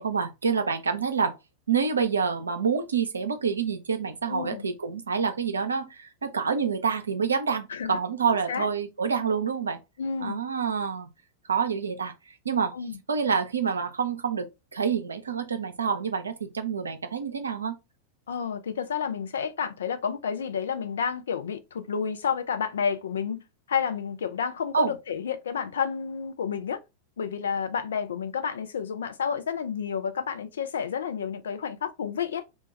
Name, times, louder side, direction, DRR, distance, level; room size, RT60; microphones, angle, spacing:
voice 1, 0.0-1.4 1.7-9.8 10.2-11.1 11.5-12.1 12.4-12.7 13.1-17.8 24.7-24.9, right 6 dB, 75° right, 0.4 m, -27 dB
voice 2, 4.3-4.7 7.7-8.0 8.5-8.7 10.0-10.4 12.7-12.9 18.3-23.4 23.7-26.8 27.2-32.4, left 7 dB, 65° left, 0.4 m, -30 dB
2.2 x 2.2 x 3.8 m
figure-of-eight pair, 90°, 0 cm